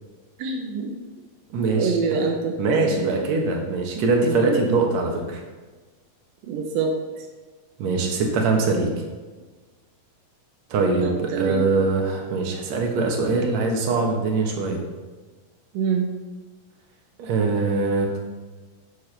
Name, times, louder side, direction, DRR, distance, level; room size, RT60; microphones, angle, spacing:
voice 1, 0.4-0.9 1.8-2.5 3.0-3.1 3.9-4.6 6.5-7.0 11.0-11.6 15.7-16.1, right 5 dB, 80° right, 2 dB, 1.6 m, -25 dB
voice 2, 1.5-2.0 2.6-5.4 7.8-8.9 10.7-14.8 17.2-18.2, right 3 dB, 60° right, 1 dB, 2.1 m, -22 dB
10.5 x 6.7 x 3.3 m, 1.3 s
omnidirectional pair, 4.1 m